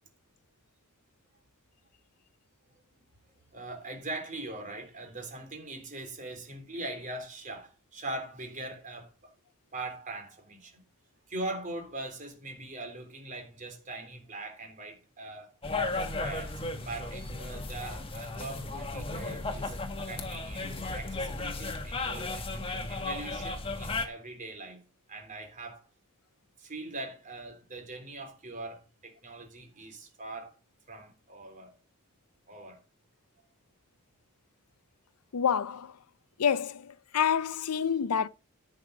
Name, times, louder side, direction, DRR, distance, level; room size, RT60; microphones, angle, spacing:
voice 1, 3.5-9.3 9.7-10.8 11.3-15.5 15.9-19.7 20.0-22.5 22.9-24.8 25.1-25.8 26.6-30.6 30.9-31.7 32.5-32.8, right 2 dB, 35° right, 3.5 m, -41 dB
sound 1, 15.6-24.1, left 3 dB, 25° left, 1.5 m, -35 dB
voice 2, 35.3-35.9 36.4-38.3, left 7 dB, 90° left, 0.6 m, -28 dB
11.0 x 6.7 x 5.0 m
head